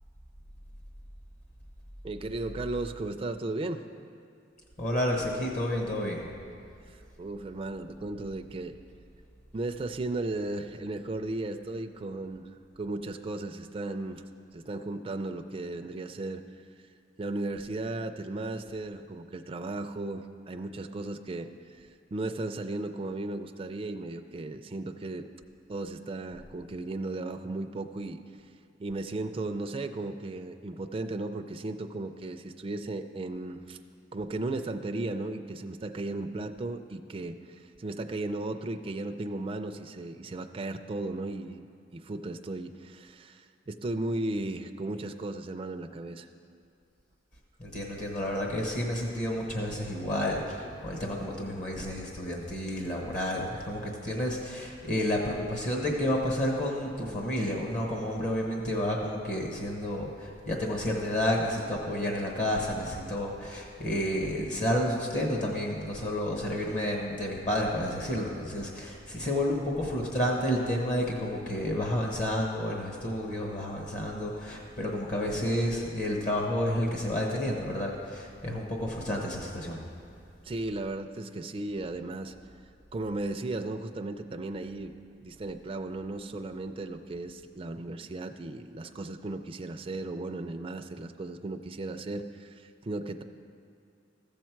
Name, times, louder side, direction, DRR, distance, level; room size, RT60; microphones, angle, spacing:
voice 1, 2.0-3.8 6.9-8.8 9.5-14.2 14.5-16.7 17.2-25.3 25.7-28.2 28.8-33.8 34.1-41.6 41.9-46.3 80.4-82.3 82.9-84.9 85.2-93.2, right 2 dB, 30° right, 6 dB, 0.4 m, -35 dB
voice 2, 4.8-6.3 47.6-79.8, left 1 dB, 45° left, 0 dB, 1.1 m, -30 dB
14.5 x 7.3 x 4.5 m, 2.4 s
head